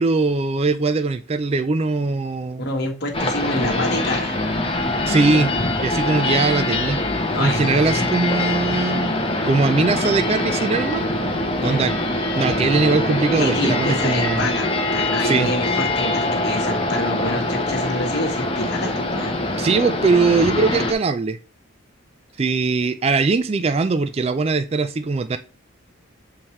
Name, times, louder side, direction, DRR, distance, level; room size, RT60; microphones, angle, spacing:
voice 1, 0.0-2.7 5.1-5.5 5.8-7.0 7.4-9.2 9.4-11.1 11.6-12.0 12.4-14.5 15.2-15.5 19.6-21.4 22.4-25.4, right 3 dB, 30° right, 11 dB, 0.3 m, -20 dB
voice 2, 2.6-4.4 7.3-7.8 11.5-11.9 13.4-19.6, left 1 dB, 50° left, 1 dB, 1.4 m, -27 dB
sound 1, 3.1-20.9, left 2 dB, 25° left, 0.9 m, -23 dB
7.2 x 4.5 x 3.2 m, 0.32 s
head